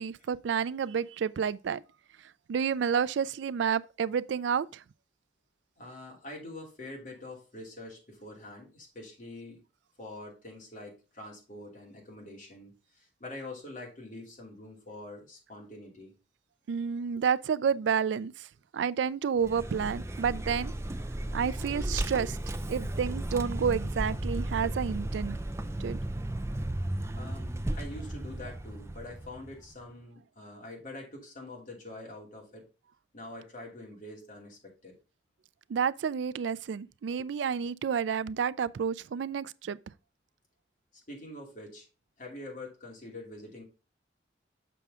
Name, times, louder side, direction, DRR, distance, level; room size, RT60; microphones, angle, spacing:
voice 1, 0.0-1.8 2.5-4.8 16.7-18.5 18.7-20.7 21.3-25.4 25.8-26.0 35.7-39.8, right 7 dB, 75° right, 0.3 m, -30 dB
voice 2, 5.8-9.6 10.0-16.1 27.1-32.7 33.1-35.0 41.1-41.9 42.2-43.6, left 1 dB, 45° left, 2.8 m, -45 dB
Vehicle, 19.4-29.7, right 1 dB, 15° right, 0.4 m, -34 dB
6.9 x 5.9 x 3.6 m
head